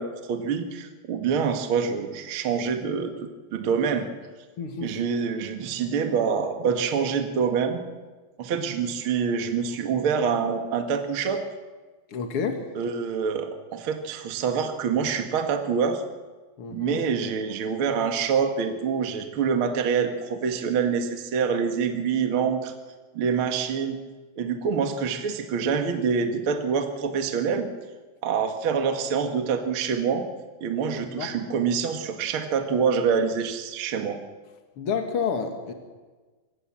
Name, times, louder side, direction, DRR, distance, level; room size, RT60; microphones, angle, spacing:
voice 1, 0.0-3.1 3.5-4.0 4.8-7.8 8.4-11.4 12.7-16.0 16.7-22.7 23.1-24.0 24.4-27.7 28.2-30.3 30.6-34.2, right 6 dB, 65° right, 5 dB, 1.2 m, -26 dB
voice 2, 4.6-5.0 12.1-12.6 16.6-17.1 30.9-31.4 34.8-35.7, left 6 dB, 70° left, 5 dB, 1.3 m, -30 dB
25.0 x 21.0 x 7.6 m, 1.3 s
omnidirectional pair, 5.5 m